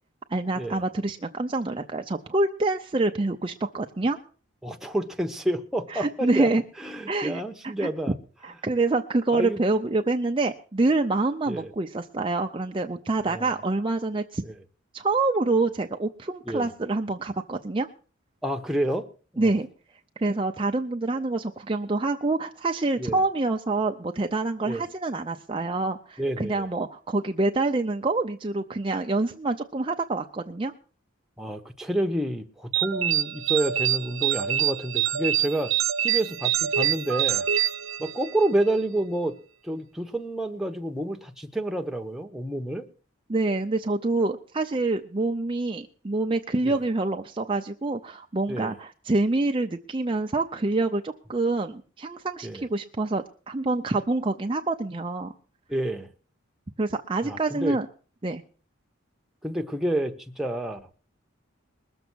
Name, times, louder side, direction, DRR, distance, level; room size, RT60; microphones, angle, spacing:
voice 1, 0.3-4.2 5.9-6.6 7.1-7.9 8.4-14.4 14.9-17.9 19.4-19.7 20.2-30.7 43.3-55.3 56.8-57.9 58.2-58.4, right 2 dB, 25° right, 4 dB, 0.5 m, -26 dB
voice 2, 4.6-6.5 6.8-8.2 9.3-9.6 11.5-11.7 13.3-13.6 14.4-14.5 16.5-16.7 18.4-19.1 19.3-19.5 23.0-23.2 24.6-24.8 26.2-26.7 31.4-35.7 36.0-37.5 38.0-39.3 39.6-42.8 46.6-46.7 48.5-48.7 52.4-52.6 55.7-56.1 57.2-57.8 59.4-60.8, right 1 dB, ahead, 3 dB, 1.0 m, -29 dB
sound 1, 32.7-38.5, right 11 dB, 90° right, 0.8 m, -25 dB
21.0 x 7.0 x 6.2 m, 0.39 s
head